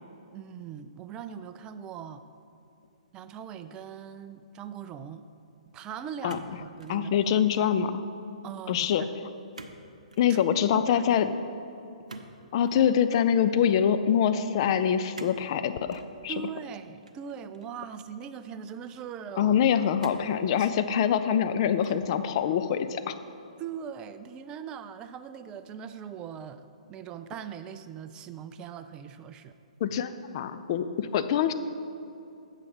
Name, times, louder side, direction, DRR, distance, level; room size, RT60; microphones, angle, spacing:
voice 1, 0.3-2.3 3.1-5.2 5.7-7.1 8.4-9.1 10.3-10.4 10.7-11.0 16.3-19.6 20.6-20.7 23.6-29.6, right 8 dB, 20° right, 11 dB, 0.4 m, -41 dB
sound 1, 6.3-7.0 7.4-7.8 9.5-9.8 10.1-10.3 12.1-12.9 15.1-15.5 15.9-16.1 17.0-17.8 18.5-18.6 20.0-20.4 21.0-21.5 21.8-22.2, right 3 dB, 75° right, 0.7 m, -47 dB
voice 2, 6.9-8.0 8.7-9.0 10.2-11.3 12.5-16.3 19.4-23.1 29.8-31.5, left 8 dB, 40° left, 11 dB, 0.4 m, -25 dB
8.3 x 6.5 x 5.1 m, 2.7 s
figure-of-eight pair, 125°, 4 cm